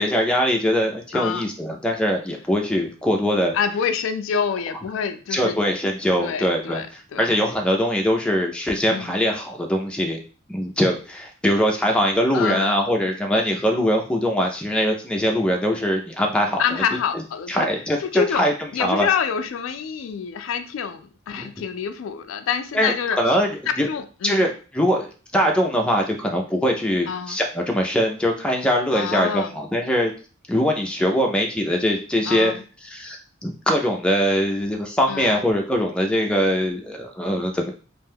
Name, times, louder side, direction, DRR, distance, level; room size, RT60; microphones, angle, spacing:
voice 1, 0.0-3.5 5.3-6.8 7.2-10.2 10.5-16.6 16.9-17.0 17.5-18.5 18.8-19.1 21.3-21.5 22.7-23.5 23.8-23.9 24.2-25.1 25.3-30.1 30.5-32.5 32.9-37.7, equal, 5° left, 1 dB, 0.4 m, -22 dB
voice 2, 1.1-1.5 3.5-5.6 6.2-6.9 7.1-7.3 8.8-9.1 12.3-12.7 16.6-17.7 18.0-23.4 23.8-24.5 27.1-27.4 28.9-29.5 32.3-32.6 35.1-35.4, left 7 dB, 90° left, 9 dB, 0.3 m, -27 dB
2.5 x 2.2 x 3.4 m, 0.36 s
head